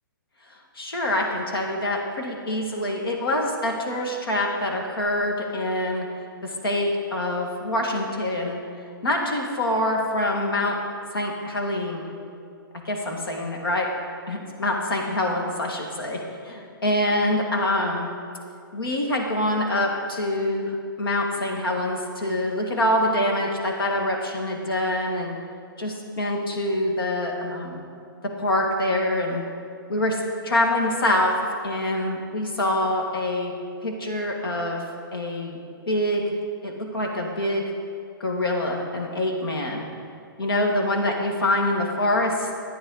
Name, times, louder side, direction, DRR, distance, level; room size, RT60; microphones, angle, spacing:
voice 1, 0.8-6.1 6.4-8.6 9.0-10.8 11.1-12.1 12.7-13.9 14.3-18.1 18.7-25.4 25.8-27.8 28.2-29.5 29.9-31.4 31.6-33.5 33.8-34.8 35.1-35.6 35.9-36.4 36.6-37.7 38.2-39.9 40.4-42.5, left 1 dB, 85° left, 1 dB, 2.0 m, -25 dB
12.5 x 9.2 x 3.9 m, 2.4 s
hypercardioid pair, 150°, 12 cm